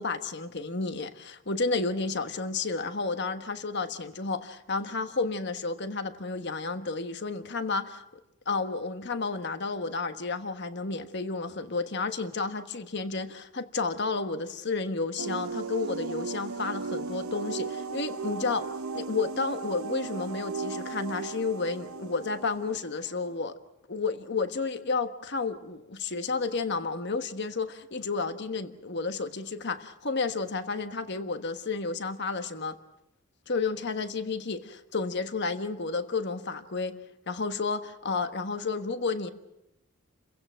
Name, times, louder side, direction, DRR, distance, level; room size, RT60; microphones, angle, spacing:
voice 1, 0.0-8.0 8.5-18.7 18.9-23.6 23.9-32.8 33.5-37.0 37.3-39.3, left 4 dB, 55° left, 9 dB, 1.3 m, -31 dB
sound 1, 15.2-23.5, right 4 dB, 75° right, 0.8 m, -36 dB
29.5 x 16.0 x 7.5 m, 0.89 s
head